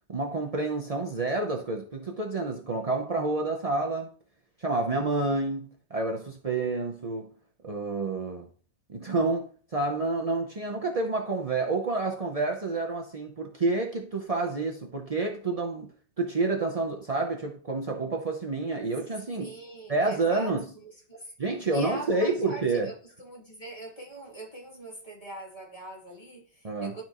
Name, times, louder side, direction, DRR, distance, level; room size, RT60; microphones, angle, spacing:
voice 1, 0.1-4.1 4.6-7.3 7.6-8.5 8.9-15.9 16.2-19.5 19.9-20.6 21.4-22.9 26.6-27.0, right 3 dB, 65° right, 0.3 m, -29 dB
voice 2, 19.4-21.3 21.7-27.0, right 1 dB, 20° left, 2.8 m, -43 dB
12.0 x 4.4 x 3.0 m
omnidirectional pair, 1.9 m